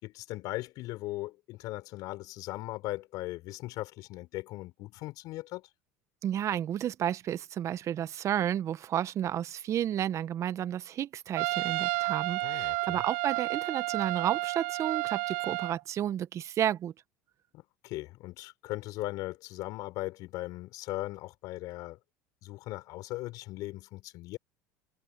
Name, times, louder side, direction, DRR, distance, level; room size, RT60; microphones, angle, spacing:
voice 1, 0.0-5.7 12.4-13.0 17.5-22.0 22.4-24.4, left 18 dB, 60° left, 6.1 m, -39 dB
voice 2, 6.2-16.9, right 10 dB, 45° right, 1.5 m, -32 dB
Trumpet, 11.4-15.8, right 27 dB, 70° right, 3.3 m, -31 dB
hypercardioid pair, 80°, 7 cm